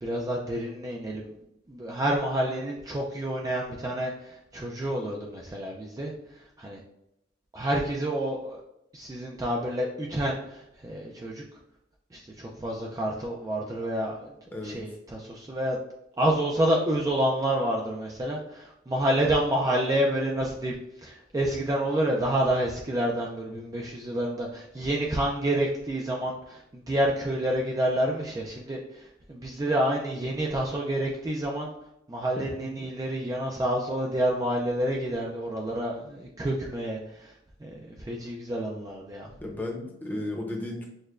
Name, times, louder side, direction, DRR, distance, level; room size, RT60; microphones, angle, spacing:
voice 1, 0.0-1.3 1.7-6.8 7.5-8.6 8.9-11.6 12.1-14.3 14.6-15.8 16.2-31.7 32.1-37.4 37.6-39.3, right 1 dB, 20° right, -1 dB, 0.3 m, -29 dB
voice 2, 39.4-40.9, left 1 dB, 10° left, -1 dB, 0.7 m, -34 dB
6.4 x 2.2 x 2.4 m, 0.83 s
head